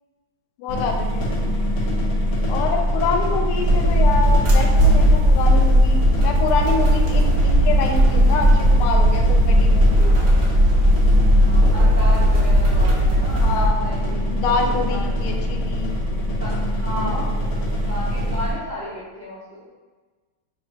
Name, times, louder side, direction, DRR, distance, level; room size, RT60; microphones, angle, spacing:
voice 1, 0.6-1.3 2.5-10.1 13.4-13.8 14.3-16.0 16.9-17.3, left 4 dB, 90° left, 3 dB, 1.5 m, -26 dB
sound 1, 0.7-18.5, equal, 55° left, 1.0 m, -23 dB
sound 2, 3.6-13.7, equal, 85° right, 0.7 m, -17 dB
voice 2, 11.4-14.3 14.8-15.3 16.3-19.7, equal, 40° right, -11 dB, 0.6 m, -34 dB
3.5 x 2.4 x 4.3 m, 1.3 s
omnidirectional pair, 2.3 m